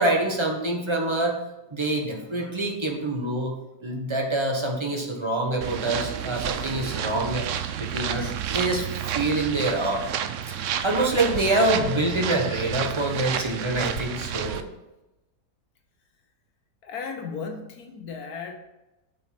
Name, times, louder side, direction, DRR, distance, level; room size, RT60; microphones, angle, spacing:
voice 1, 0.0-1.4 1.7-3.5 3.8-7.5 7.8-8.9 9.1-10.0 10.8-14.6, right 2 dB, 20° right, 1 dB, 1.1 m, -25 dB
sound 1, 5.6-14.6, right 9 dB, 65° right, 0.8 m, -30 dB
voice 2, 16.8-18.6, left 5 dB, 65° left, 4 dB, 1.5 m, -35 dB
7.4 x 5.6 x 5.9 m, 0.97 s
omnidirectional pair, 1.8 m